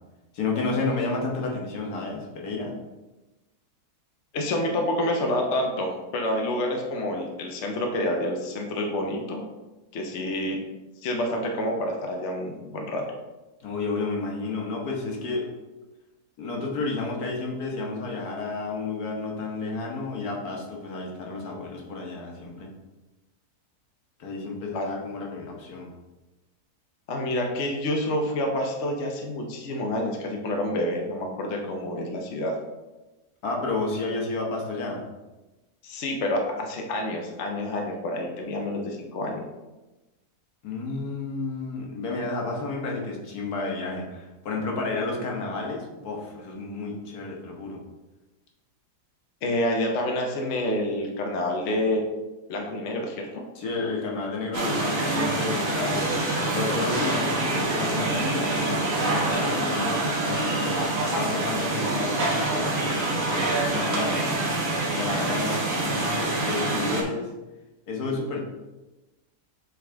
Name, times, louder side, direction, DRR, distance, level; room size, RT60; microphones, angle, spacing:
voice 1, 0.3-2.8 13.6-15.5 16.4-22.7 24.2-25.9 33.4-35.0 40.6-47.8 53.6-56.1 56.5-60.9 61.2-63.0 63.3-64.5 64.9-67.3 67.9-68.4, left 3 dB, 70° left, -1 dB, 1.6 m, -31 dB
voice 2, 4.3-9.4 9.9-10.6 11.0-13.1 24.7-24.9 27.1-32.6 35.8-39.5 49.4-52.1 52.5-53.4, left 1 dB, 55° left, 1 dB, 1.0 m, -28 dB
sound 1, 54.5-67.0, right 2 dB, 55° right, 1.6 m, -26 dB
7.7 x 3.8 x 3.5 m, 1.1 s
omnidirectional pair, 1.7 m